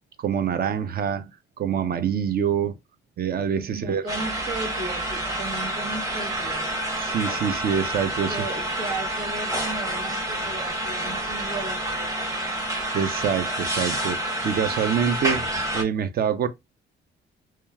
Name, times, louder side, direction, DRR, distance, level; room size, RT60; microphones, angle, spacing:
voice 1, 0.2-1.3 1.6-2.7 3.2-4.0 7.0-8.4 12.9-14.2 14.4-15.4 15.7-16.5, right 8 dB, 50° right, 0.5 m, -25 dB
voice 2, 3.7-6.7 8.3-12.3, right 2 dB, 85° right, 1.2 m, -35 dB
sound 1, 4.1-15.8, right 1 dB, 15° right, 1.0 m, -28 dB
2.9 x 2.3 x 2.2 m
cardioid pair, 90°, 20 cm